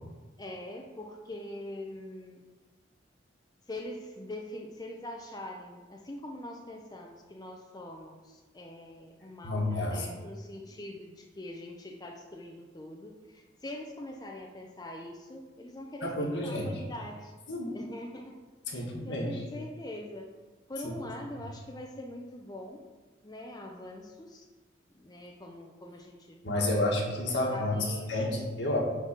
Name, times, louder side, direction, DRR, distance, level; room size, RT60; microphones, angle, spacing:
voice 1, 0.4-2.4 3.7-17.3 17.7-18.3 18.7-20.3 20.7-22.8 23.2-24.5 24.9-28.1, left 1 dB, 20° left, 1 dB, 0.7 m, -43 dB
voice 2, 9.4-10.1 16.0-16.7 17.5-17.8 18.7-19.3 26.4-28.8, left 1 dB, 70° left, -1 dB, 1.8 m, -30 dB
9.3 x 4.2 x 6.0 m, 1.3 s
head